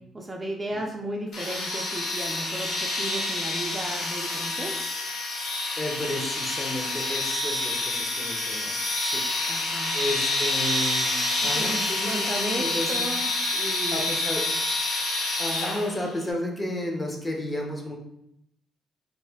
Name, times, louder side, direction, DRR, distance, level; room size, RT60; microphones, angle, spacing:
voice 1, 0.0-4.9 9.5-9.9 11.4-14.0, right 1 dB, 20° right, 1 dB, 0.4 m, -35 dB
sound 1, 1.3-16.1, left 2 dB, 70° left, 0.9 m, -28 dB
voice 2, 5.8-9.2 9.9-13.0 13.9-14.4 15.4-18.0, left 1 dB, 25° left, 1 dB, 0.8 m, -32 dB
3.1 x 2.6 x 3.5 m, 0.79 s
cardioid pair, 90°, 0 cm